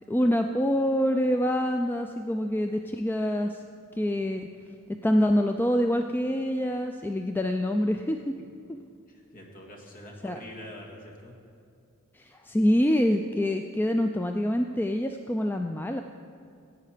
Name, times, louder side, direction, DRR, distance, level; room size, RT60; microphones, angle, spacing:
voice 1, 0.1-3.6 4.0-4.5 5.0-8.4 10.2-10.4 12.1-16.0, equal, 10° left, 5 dB, 0.3 m, -26 dB
voice 2, 9.1-11.3, left 1 dB, 40° left, 0 dB, 1.9 m, -45 dB
16.0 x 8.4 x 5.0 m, 2.4 s
head